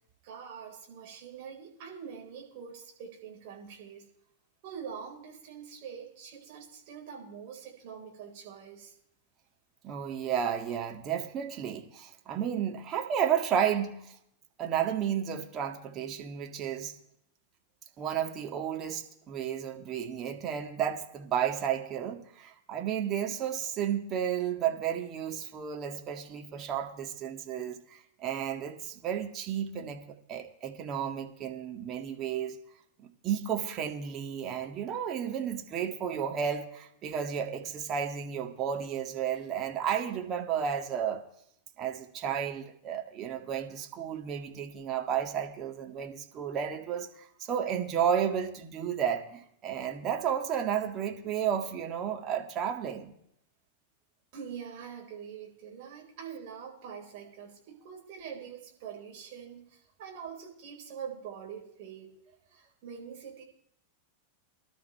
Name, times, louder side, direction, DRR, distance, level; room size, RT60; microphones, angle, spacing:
voice 1, 0.2-4.1 4.6-8.9 54.3-62.1 62.5-63.4, right 7 dB, 45° right, 4.8 m, -44 dB
voice 2, 9.8-14.2 14.6-17.0 18.0-32.6 33.0-41.2 41.8-53.1, right 8 dB, 30° right, 1.9 m, -32 dB
23.5 x 12.0 x 3.5 m
figure-of-eight pair, 90°, 0 cm